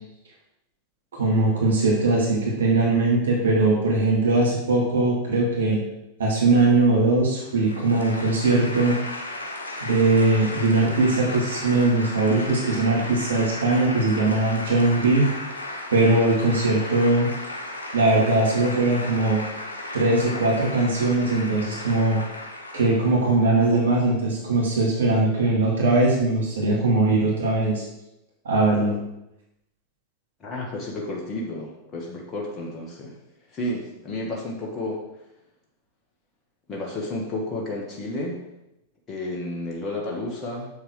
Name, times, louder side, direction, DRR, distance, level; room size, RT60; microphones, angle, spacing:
voice 1, 1.1-5.8 6.2-9.0 9.8-15.3 15.9-17.3 17.9-19.4 19.9-22.2 22.7-27.8 28.4-29.0, right 2 dB, 65° right, -3 dB, 2.6 m, -20 dB
sound 1, 7.4-23.4, left 1 dB, 75° left, 1.2 m, -35 dB
voice 2, 30.4-33.2 33.5-35.0 36.7-38.4 39.1-40.7, left 1 dB, 25° left, -2 dB, 1.7 m, -31 dB
7.5 x 6.7 x 4.9 m, 0.88 s
figure-of-eight pair, 90°, 0 cm